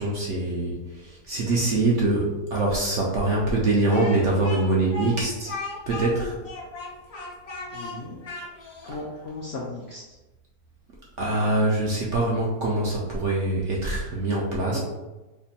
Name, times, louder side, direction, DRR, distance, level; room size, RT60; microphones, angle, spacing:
voice 1, 0.0-5.5 5.9-6.4 11.2-14.8, right 2 dB, 65° right, -3 dB, 0.7 m, -24 dB
Speech, 3.9-9.0, left 1 dB, 50° left, 0.9 m, -37 dB
voice 2, 7.7-8.2 8.8-10.2 14.7-14.8, left 3 dB, 70° left, -3 dB, 0.6 m, -36 dB
3.3 x 2.2 x 4.0 m, 1.1 s
omnidirectional pair, 1.8 m